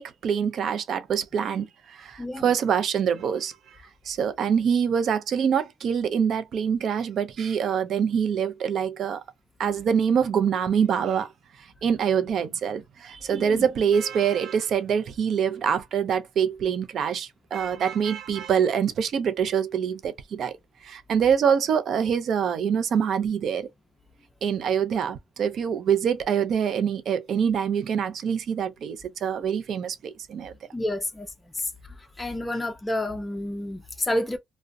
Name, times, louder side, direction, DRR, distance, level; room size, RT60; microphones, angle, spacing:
voice 1, 0.0-3.6 4.1-9.2 9.6-11.3 11.6-20.6 20.8-23.7 24.4-30.5, right 7 dB, 65° right, 0.4 m, -25 dB
voice 2, 13.3-13.7 30.7-31.3 31.5-31.7 32.2-34.4, left 1 dB, 15° left, 0.4 m, -29 dB
2.3 x 2.1 x 2.5 m
cardioid pair, 90°, 0 cm